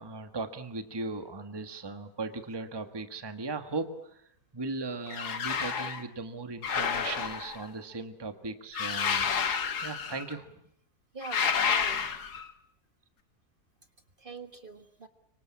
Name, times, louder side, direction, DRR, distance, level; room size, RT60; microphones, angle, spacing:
voice 1, 0.0-9.5 9.8-10.6, right 3 dB, 15° right, 8 dB, 1.5 m, -38 dB
sound 1, 5.1-6.0 6.6-7.7 8.7-10.3 11.2-12.5, left 6 dB, 85° left, 2.1 m, -30 dB
voice 2, 11.1-12.0 14.2-15.1, right 3 dB, 35° right, 8 dB, 1.7 m, -43 dB
25.5 x 24.5 x 8.6 m, 0.70 s
omnidirectional pair, 1.7 m